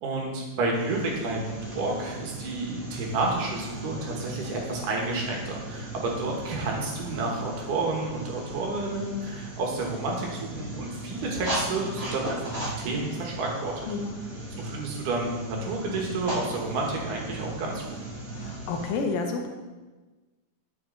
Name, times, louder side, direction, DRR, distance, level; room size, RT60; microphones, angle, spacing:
voice 1, 0.0-13.9 14.6-18.0, right 2 dB, 70° right, -1 dB, 2.9 m, -30 dB
sound 1, 0.7-18.9, right 1 dB, 20° right, 0.9 m, -37 dB
voice 2, 13.9-14.2 18.3-19.5, left 4 dB, 90° left, 3 dB, 2.6 m, -30 dB
9.5 x 7.2 x 3.9 m, 1.2 s
omnidirectional pair, 3.9 m